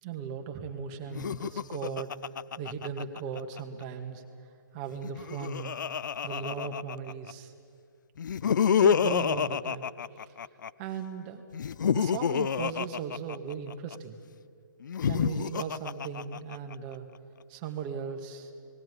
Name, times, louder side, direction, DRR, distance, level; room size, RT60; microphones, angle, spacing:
voice 1, 0.0-2.2 2.6-4.2 4.7-5.8 6.2-7.5 8.7-9.9 10.2-10.3 10.8-11.4 11.9-14.2 15.0-17.1 17.5-18.5, right 7 dB, 30° right, 4 dB, 2.0 m, -37 dB
Laughter, 1.1-3.6 4.9-7.3 8.2-10.7 11.5-14.0 14.8-16.8, left 7 dB, 70° left, 0.4 m, -28 dB
19.5 x 17.0 x 9.8 m, 2.3 s
hypercardioid pair, 145°, 11 cm